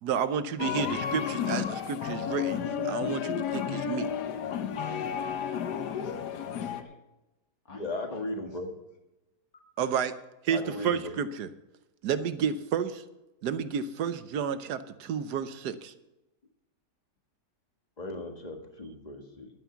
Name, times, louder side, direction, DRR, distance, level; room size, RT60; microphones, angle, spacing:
voice 1, 0.0-2.6 2.8-4.1 9.8-10.1 10.4-11.5 12.0-13.0 13.4-15.9, right 7 dB, 80° right, 12 dB, 1.4 m, -31 dB
sound 1, 0.6-6.8, left 8 dB, 80° left, 1.4 m, -32 dB
voice 2, 4.6-6.9 7.6-8.7, left 1 dB, 60° left, 0 dB, 3.3 m, -52 dB
voice 3, 7.7-8.7 10.5-11.1 18.0-19.5, left 2 dB, 25° left, 4 dB, 1.7 m, -37 dB
11.5 x 9.4 x 7.1 m, 0.99 s
omnidirectional pair, 1.7 m